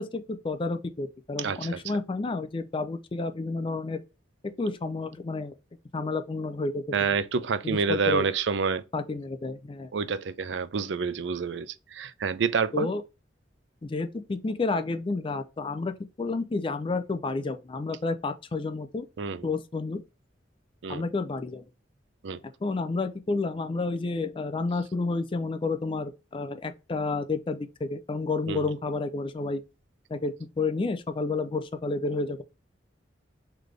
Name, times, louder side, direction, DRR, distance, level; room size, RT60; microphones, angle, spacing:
voice 1, 0.0-4.0 4.4-5.5 5.9-7.2 7.6-8.2 8.9-9.9 12.7-13.0 13.8-19.1 19.4-20.0 20.9-21.7 22.6-29.6 30.1-32.4, left 3 dB, 25° left, 0.4 m, -30 dB
voice 2, 1.4-1.8 6.9-8.8 9.9-12.9 19.2-19.5 20.8-21.0 22.2-22.4 28.5-28.7, right 5 dB, 70° right, 0.4 m, -28 dB
3.9 x 3.3 x 3.1 m
head